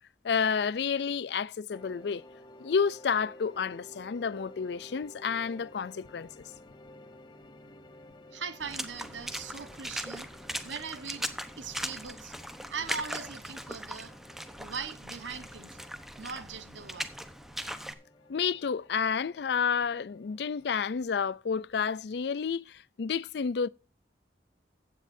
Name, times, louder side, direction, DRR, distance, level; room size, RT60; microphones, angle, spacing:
voice 1, 0.2-2.2 2.6-6.4 18.3-23.7, left 6 dB, 65° left, 0.4 m, -30 dB
The Ancient Manuscripts, 1.7-20.7, left 1 dB, 25° left, 1.0 m, -54 dB
voice 2, 8.3-10.3 10.6-11.3 11.6-12.3 12.7-14.2 14.6-15.8 16.2-17.1, right 6 dB, 90° right, 1.3 m, -40 dB
Water / Splash splatter, 8.6-17.9, equal, ahead, 0.9 m, -39 dB
15.5 x 9.4 x 2.7 m
head